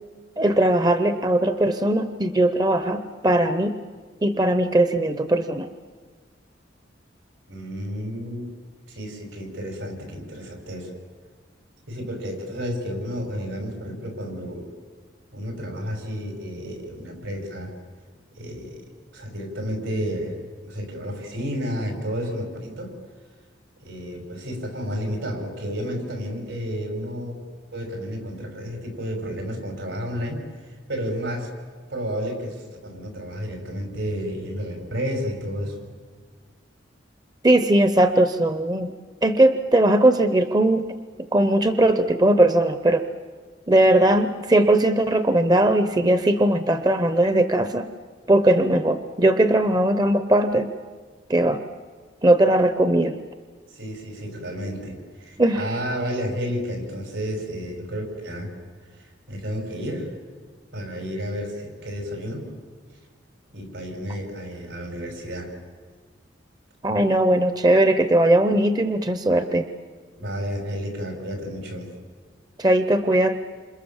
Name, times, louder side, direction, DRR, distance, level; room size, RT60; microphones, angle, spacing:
voice 1, 0.4-3.8 4.2-5.7 37.4-38.9 39.2-40.9 41.3-43.1 43.7-47.9 48.3-50.7 51.3-51.6 52.2-53.2 55.4-55.7 66.8-69.7 72.6-73.4, right 1 dB, 20° right, 10 dB, 0.8 m, -19 dB
voice 2, 7.5-8.5 8.9-10.9 11.9-14.7 15.3-17.7 18.4-18.9 19.1-23.0 23.8-27.4 27.7-30.5 30.9-31.5 31.9-35.8 53.7-58.5 58.9-60.1 60.7-62.5 63.5-65.5 70.2-71.9, equal, 80° right, 4 dB, 6.1 m, -31 dB
28.5 x 27.5 x 7.3 m, 1.5 s
head